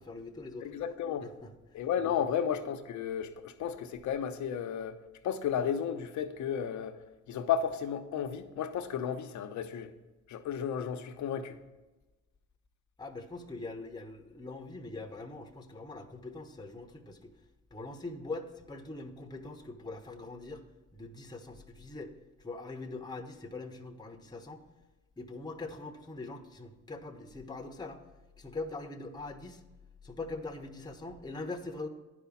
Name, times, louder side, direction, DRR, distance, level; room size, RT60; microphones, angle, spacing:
voice 1, 0.0-0.7 1.2-2.3 13.0-17.3 17.7-20.6 20.9-22.1 22.4-24.6 25.2-28.0 28.4-29.6 30.0-31.9, left 3 dB, 15° left, 0.9 m, -42 dB
voice 2, 0.6-1.3 1.7-5.0 5.2-7.0 7.3-9.9 10.3-11.6, left 8 dB, 70° left, 0.8 m, -33 dB
10.0 x 5.0 x 7.1 m
cardioid pair, 90°, 30 cm